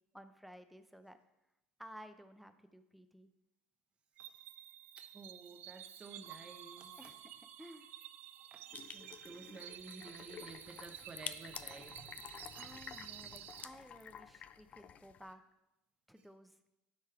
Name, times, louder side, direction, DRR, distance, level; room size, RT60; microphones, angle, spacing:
voice 1, 0.1-1.2 1.8-3.3 6.9-7.9 12.5-15.4 16.1-16.6, equal, ahead, 9 dB, 0.6 m, -55 dB
sound 1, 4.2-13.7, right 12 dB, 60° right, 0.4 m, -52 dB
voice 2, 5.0-6.9 8.9-12.1, right 3 dB, 30° right, 4 dB, 0.9 m, -52 dB
sound 2, 8.7-15.3, left 8 dB, 40° left, 0.4 m, -50 dB
12.0 x 4.5 x 3.4 m, 0.90 s
supercardioid pair, 95°, 4 cm